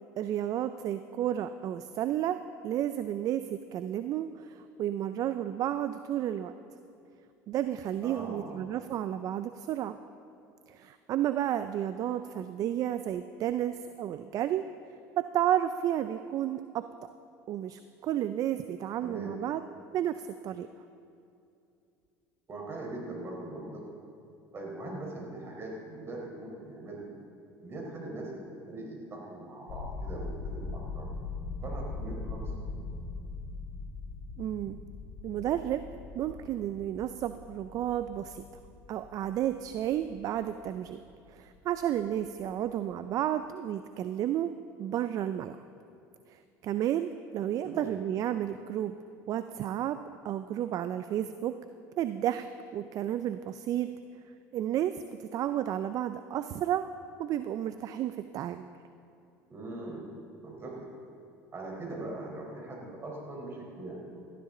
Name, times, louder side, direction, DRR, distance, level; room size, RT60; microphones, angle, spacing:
voice 1, 0.2-6.5 7.5-10.0 10.7-14.6 15.2-17.1 17.5-19.6 19.9-20.7 34.4-34.8 35.2-35.8 36.1-38.4 38.9-41.0 41.3-44.5 44.8-45.6 46.3-48.9 49.3-50.0 50.2-51.6 52.0-52.5 52.7-53.9 54.5-56.9 57.2-58.7, right 11 dB, 50° right, 11 dB, 0.5 m, -32 dB
voice 2, 8.0-8.6 19.0-19.3 22.5-23.8 24.5-27.1 27.6-31.1 31.6-32.5 47.6-47.9 59.5-60.1 60.4-60.9 61.5-64.1, right 2 dB, 35° right, -1 dB, 4.3 m, -41 dB
sound 1, 29.7-41.6 41.8-42.2 42.5-42.7, left 3 dB, 60° left, 3.6 m, -41 dB
18.5 x 13.5 x 3.9 m, 2.6 s
supercardioid pair, 105°, 8 cm